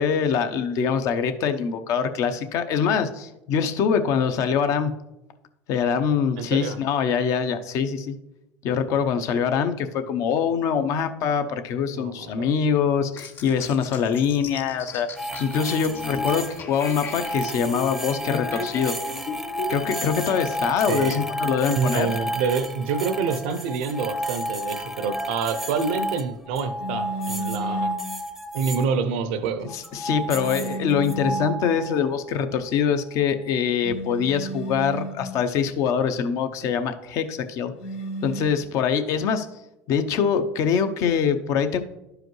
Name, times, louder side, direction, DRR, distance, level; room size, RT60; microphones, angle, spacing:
voice 1, 0.0-4.9 5.7-8.2 8.6-15.1 15.4-19.0 19.7-22.1 29.7-37.7 38.2-39.5 39.9-41.8, left 7 dB, 65° left, 9 dB, 0.7 m, -24 dB
voice 2, 6.4-6.8 11.9-12.5 20.9-21.2 21.7-27.9 28.5-29.7, right 5 dB, 85° right, 10 dB, 0.6 m, -27 dB
sound 1, 13.2-20.1, left 4 dB, 45° left, 2.2 m, -37 dB
sound 2, 15.2-28.9 29.7-32.3, equal, 5° right, 0.6 m, -31 dB
sound 3, 26.8-28.1 30.3-31.7 33.8-35.4 37.8-38.5, right 2 dB, 85° left, 1.0 m, -32 dB
11.5 x 4.9 x 3.1 m, 0.92 s
supercardioid pair, 90°, 6 cm